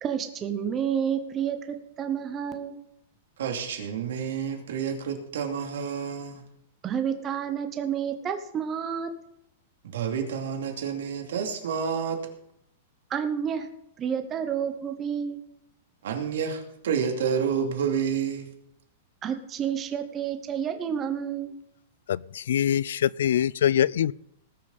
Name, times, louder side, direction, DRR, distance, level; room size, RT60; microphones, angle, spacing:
voice 1, 0.0-2.8 6.8-9.1 13.1-13.7 14.0-15.4 19.2-21.6, right 8 dB, 20° right, 7 dB, 0.9 m, -30 dB
voice 2, 3.4-6.4 9.9-12.2 16.0-18.5, right 7 dB, 80° right, 3 dB, 2.6 m, -29 dB
voice 3, 22.1-24.1, left 10 dB, 80° left, 24 dB, 0.3 m, -24 dB
19.0 x 6.6 x 5.4 m, 0.78 s
supercardioid pair, 165°, 0 cm